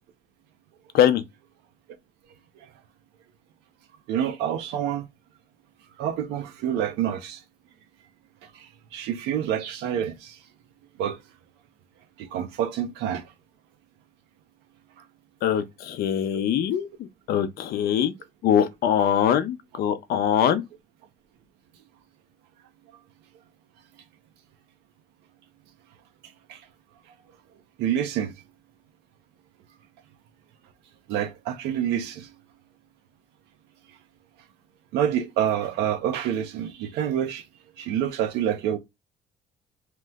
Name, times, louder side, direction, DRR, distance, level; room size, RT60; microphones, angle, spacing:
voice 1, 4.1-5.1 6.0-7.4 8.5-8.6 8.9-10.4 11.0-11.2 12.2-13.2 26.5-26.6 27.8-28.3 31.1-32.3 34.9-37.4 37.8-38.8, right 10 dB, 85° right, 0.5 m, -27 dB
voice 2, 15.4-16.9 17.3-18.1 18.4-20.6, left 9 dB, 65° left, 0.5 m, -22 dB
3.0 x 2.0 x 3.4 m
cardioid pair, 110°, 17 cm